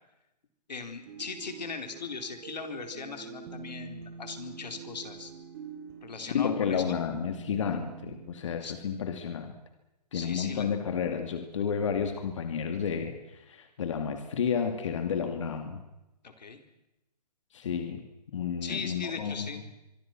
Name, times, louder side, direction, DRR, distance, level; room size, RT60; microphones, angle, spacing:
voice 1, 0.7-5.3 6.0-7.0 8.6-8.7 10.1-10.8 16.2-16.6 18.6-19.6, left 5 dB, 85° left, 6 dB, 4.4 m, -39 dB
sound 1, 1.1-8.3, right 5 dB, 25° right, 3.1 m, -45 dB
voice 2, 6.3-9.5 10.1-15.8 17.5-18.0 18.3-19.5, left 7 dB, 45° left, 6 dB, 2.5 m, -31 dB
24.5 x 24.5 x 6.1 m, 0.93 s
hypercardioid pair, 170°, 21 cm